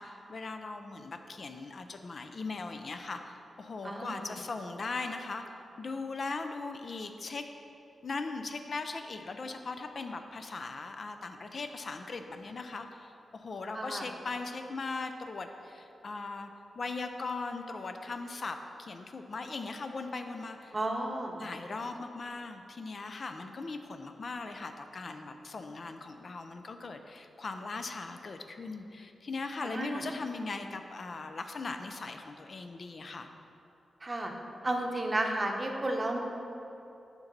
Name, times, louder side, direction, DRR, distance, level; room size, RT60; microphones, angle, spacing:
voice 1, 0.0-5.4 5.8-7.5 8.0-16.5 16.8-20.8 21.4-33.3, left 3 dB, 50° left, 6 dB, 0.4 m, -39 dB
voice 2, 3.8-4.4 13.7-14.1 20.7-21.4 29.6-30.0 34.0-34.3 34.6-36.2, right 1 dB, 25° right, 2 dB, 0.7 m, -32 dB
7.1 x 5.3 x 3.9 m, 2.9 s
wide cardioid pair, 95°, 0 cm